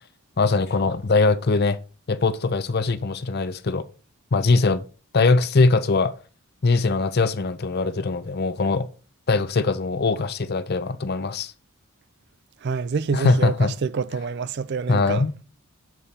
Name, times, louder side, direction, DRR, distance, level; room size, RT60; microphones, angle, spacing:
voice 1, 0.4-1.8 2.1-3.9 4.3-4.8 5.1-6.1 6.6-8.9 9.3-11.5 13.1-13.7 14.9-15.4, left 3 dB, 45° left, 0.5 m, -21 dB
voice 2, 12.6-15.2, right 5 dB, 50° right, 0.3 m, -27 dB
7.5 x 4.2 x 5.0 m
head